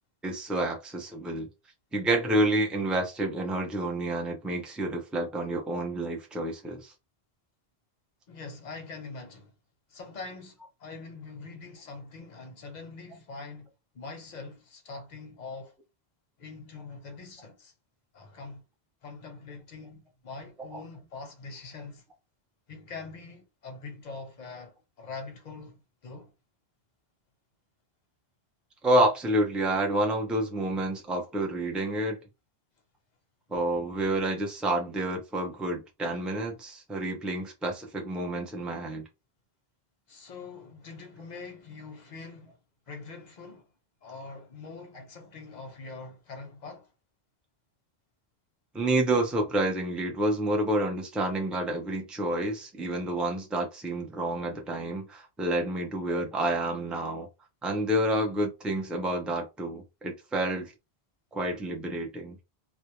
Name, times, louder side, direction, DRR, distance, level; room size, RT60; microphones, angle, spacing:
voice 1, 0.2-1.5 1.9-6.9 20.7-20.8 28.8-32.2 33.5-39.0 48.7-57.3 57.6-60.7 61.3-62.4, right 1 dB, ahead, 0.3 m, -29 dB
voice 2, 8.3-9.5 9.9-13.7 13.9-15.8 16.4-17.7 18.1-18.6 19.0-22.0 22.7-26.3 40.1-42.6 42.9-43.6 44.0-46.9, left 4 dB, 50° left, 0.6 m, -43 dB
2.2 x 2.0 x 3.0 m
omnidirectional pair, 1.1 m